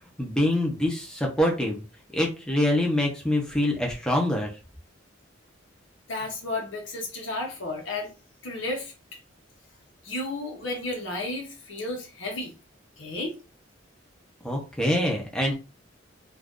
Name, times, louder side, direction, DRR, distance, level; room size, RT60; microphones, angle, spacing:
voice 1, 0.0-1.8 2.1-4.5 14.4-15.5, left 1 dB, 5° left, -1 dB, 0.7 m, -25 dB
voice 2, 6.1-8.1 8.4-8.9 10.0-12.5 13.0-13.3, left 2 dB, 75° left, 1 dB, 0.9 m, -32 dB
2.6 x 2.5 x 3.6 m, 0.31 s
head